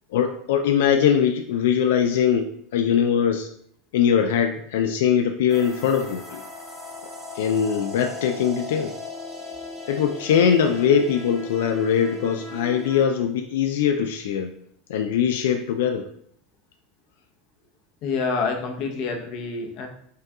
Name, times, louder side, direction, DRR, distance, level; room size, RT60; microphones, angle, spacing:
voice 1, 0.1-3.5 3.9-6.4 7.3-8.9 9.9-14.5 14.9-16.1, left 8 dB, 85° left, 6 dB, 0.3 m, -21 dB
sound 1, 5.5-13.0, left 2 dB, 5° right, 1.0 m, -37 dB
voice 2, 18.0-19.9, left 4 dB, 45° left, 2 dB, 0.8 m, -27 dB
5.3 x 2.3 x 3.6 m, 0.67 s
supercardioid pair, 150°, 0 cm